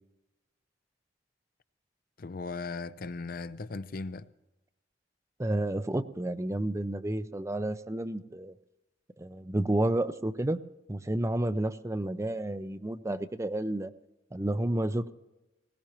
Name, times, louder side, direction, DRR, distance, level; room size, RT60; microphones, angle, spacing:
voice 1, 2.2-4.3, left 3 dB, 50° left, 0.5 m, -37 dB
voice 2, 5.4-8.5 9.2-10.6 10.9-13.9 14.3-15.1, right 1 dB, 15° right, 0.5 m, -30 dB
20.5 x 17.5 x 3.0 m
head